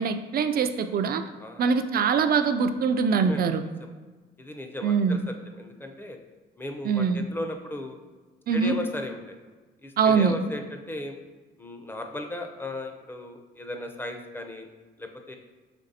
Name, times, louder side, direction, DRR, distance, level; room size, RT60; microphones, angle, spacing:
voice 1, 0.0-1.2 1.6-3.6 4.8-5.2 6.8-7.2 8.5-8.8 10.0-10.4, right 6 dB, 50° right, 9 dB, 0.4 m, -23 dB
voice 2, 1.4-1.8 3.2-3.5 4.4-6.2 6.6-8.0 8.5-9.4 9.8-11.2 11.6-14.7 15.0-15.4, left 1 dB, 10° left, 4 dB, 0.5 m, -36 dB
5.2 x 3.2 x 2.7 m, 1.3 s
cardioid pair, 90°, 20 cm